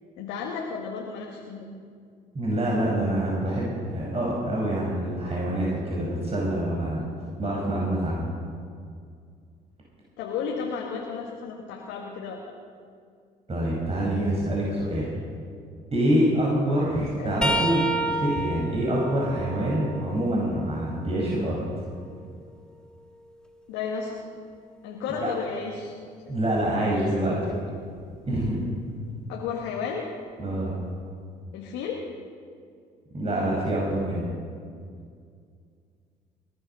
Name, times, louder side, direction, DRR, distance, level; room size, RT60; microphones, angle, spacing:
voice 1, 0.2-1.7 10.2-12.4 17.0-17.4 23.7-24.2 24.8-25.9 26.3-26.4 26.8-27.6 29.3-30.1 31.5-32.0, left 6 dB, 80° left, -1 dB, 1.8 m, -33 dB
voice 2, 2.3-7.0 7.4-8.3 13.5-15.1 15.9-21.6 25.2-25.3 26.3-27.4 28.3-28.6 30.4-30.7 33.1-34.3, right 1 dB, 35° right, -4 dB, 5.4 m, -26 dB
sound 1, 17.4-21.2 21.7-23.7 26.6-26.8 28.0-28.2 29.5-29.6, right 1 dB, 5° left, 1.8 m, -32 dB
21.0 x 12.0 x 5.6 m, 2.2 s
hypercardioid pair, 55°, 19 cm